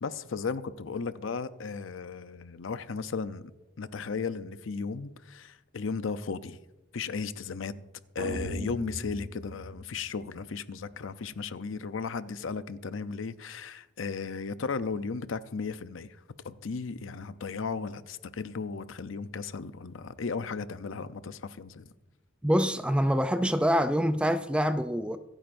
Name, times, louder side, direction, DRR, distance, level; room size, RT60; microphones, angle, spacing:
voice 1, 0.0-3.4 3.8-6.6 6.9-7.7 8.1-16.1 16.4-21.9, left 5 dB, 75° left, 0.6 m, -35 dB
sound 1, 8.2-10.5, right 1 dB, 45° right, 1.3 m, -38 dB
voice 2, 22.4-25.2, equal, 5° right, 0.4 m, -25 dB
25.5 x 9.0 x 2.6 m
head